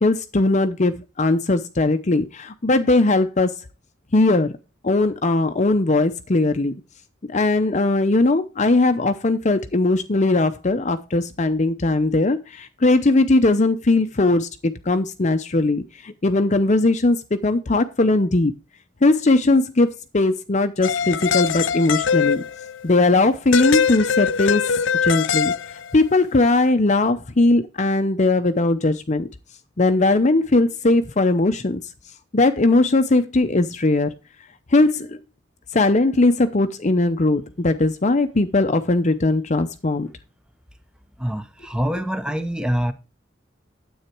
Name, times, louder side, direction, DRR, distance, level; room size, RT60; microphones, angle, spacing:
voice 1, 0.0-3.5 4.1-4.6 4.8-6.7 7.3-18.5 19.0-19.9 20.1-22.4 22.8-24.6 25.0-25.5 25.9-29.3 29.8-31.8 32.3-34.1 34.7-35.2 35.7-40.1, left 2 dB, 40° left, 0.7 m, -19 dB
sound 1, 20.8-22.8 23.5-26.0, left 7 dB, 75° left, 0.6 m, -22 dB
voice 2, 41.2-42.9, equal, 5° right, 0.9 m, -25 dB
9.8 x 8.1 x 4.5 m
head